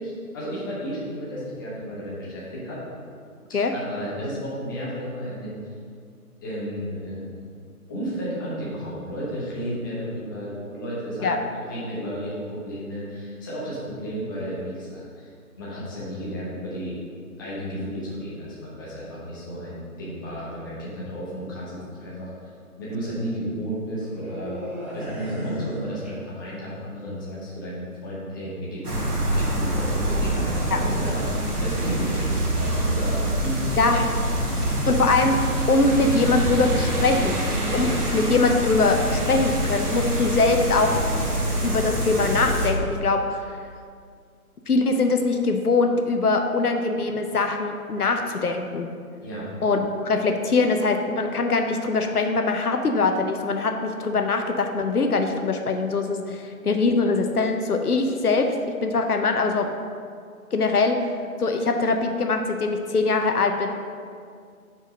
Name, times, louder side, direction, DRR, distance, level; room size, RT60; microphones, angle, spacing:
voice 1, 0.0-2.8 3.7-5.6 6.4-7.6 7.9-15.3 15.5-17.0 17.4-22.5 22.8-28.9 29.3-34.1 49.2-49.5, equal, 15° left, -7 dB, 0.9 m, -33 dB
sound 1, 24.0-26.7 27.0-27.2, equal, 10° right, 0.6 m, -34 dB
sound 2, 28.8-42.7, right 1 dB, 90° right, 1.5 m, -25 dB
voice 2, 33.8-34.1 34.9-35.4 35.7-37.4 37.7-41.0 41.6-43.4 44.7-48.9 49.6-58.5 58.8-59.7 60.5-61.0 61.4-63.8, left 3 dB, 85° left, 5 dB, 0.8 m, -22 dB
5.5 x 4.8 x 5.0 m, 2.2 s
figure-of-eight pair, 150°, 44 cm